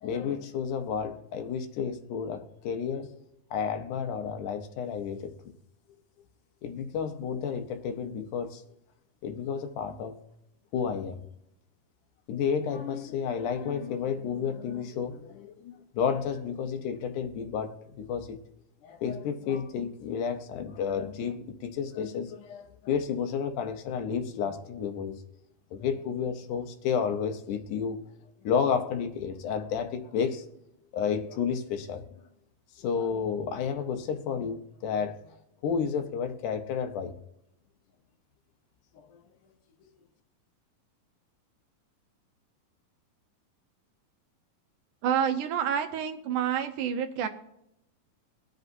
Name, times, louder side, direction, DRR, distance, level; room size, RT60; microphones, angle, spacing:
voice 1, 0.0-3.2 3.5-5.4 6.6-8.6 9.2-10.1 10.7-11.2 12.3-18.4 18.8-25.1 25.7-28.0 28.4-30.5 30.9-32.0 32.8-35.4 35.6-37.1 39.1-39.2, left 7 dB, 70° left, 6 dB, 2.2 m, -31 dB
voice 2, 45.0-47.3, right 8 dB, 70° right, 7 dB, 2.2 m, -28 dB
23.5 x 7.9 x 2.6 m, 0.81 s
omnidirectional pair, 4.1 m